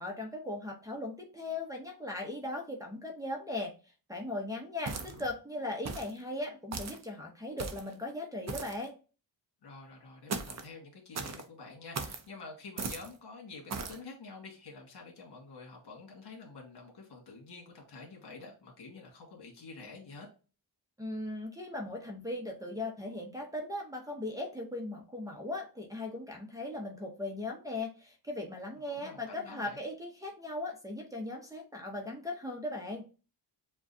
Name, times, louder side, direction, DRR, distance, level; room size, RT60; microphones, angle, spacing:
voice 1, 0.0-3.7 4.1-8.9 21.0-33.0, left 2 dB, 10° right, -2 dB, 0.8 m, -38 dB
voice 2, 4.9-5.2 9.6-20.3 28.9-29.8, left 3 dB, 65° left, 1 dB, 1.9 m, -48 dB
sound 1, 4.9-5.3 5.9-6.2 6.7-7.0 7.6-7.9 8.5-8.8 10.3-10.7 11.1-11.4 11.9-12.2 12.8-13.1 13.7-14.0, right 4 dB, 40° right, 0.6 m, -38 dB
7.1 x 2.4 x 2.7 m, 0.34 s
wide cardioid pair, 130°, 43 cm